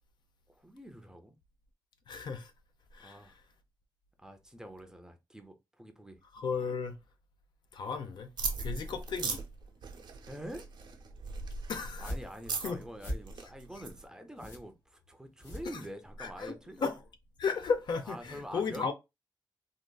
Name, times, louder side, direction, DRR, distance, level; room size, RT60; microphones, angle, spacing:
voice 1, 0.5-1.4 3.0-3.4 4.2-6.2 10.3-10.7 12.0-16.8 18.1-18.9, equal, 10° right, 0.5 m, -46 dB
voice 2, 2.1-2.5 2.9-3.2 6.3-6.9 7.7-8.3 8.6-9.4 11.7-12.1 12.6-12.8 16.2-16.5 16.8-17.0 17.4-18.9, left 5 dB, 75° left, 0.5 m, -34 dB
sound 1, 8.4-14.0, right 4 dB, 75° right, 0.7 m, -39 dB
sound 2, 12.0-16.3, equal, 55° left, 1.6 m, -43 dB
3.7 x 2.4 x 2.2 m
wide cardioid pair, 150°, 8 cm